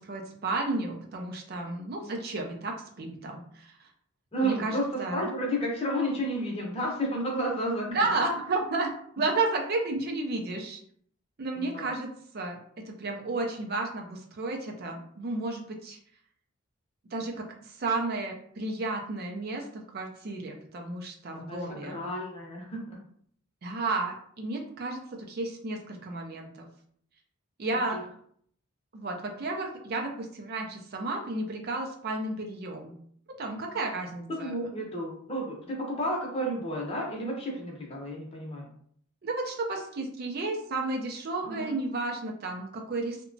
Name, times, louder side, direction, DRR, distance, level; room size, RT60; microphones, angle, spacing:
voice 1, 0.0-3.9 4.4-5.3 7.9-10.8 11.4-12.6 12.9-16.0 17.1-22.0 23.6-26.7 27.6-28.1 28.9-32.9 33.4-34.7 39.2-43.2, right 2 dB, 45° right, 2 dB, 0.4 m, -32 dB
voice 2, 4.3-7.9 11.5-11.9 21.3-21.6 21.9-23.0 27.9-28.0 34.3-38.7 41.4-41.8, equal, 30° left, -2 dB, 0.7 m, -32 dB
2.8 x 2.1 x 2.6 m, 0.62 s
head